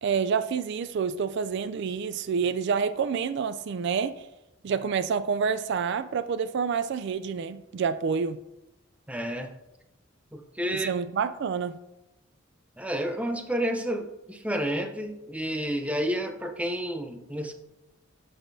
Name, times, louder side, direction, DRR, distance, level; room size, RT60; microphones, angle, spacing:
voice 1, 0.0-4.3 4.6-8.4 10.7-11.8, right 6 dB, 60° right, 13 dB, 0.3 m, -28 dB
voice 2, 9.1-9.5 10.3-10.9 12.8-17.6, equal, 5° right, 5 dB, 0.6 m, -30 dB
11.5 x 6.4 x 2.7 m, 0.93 s
head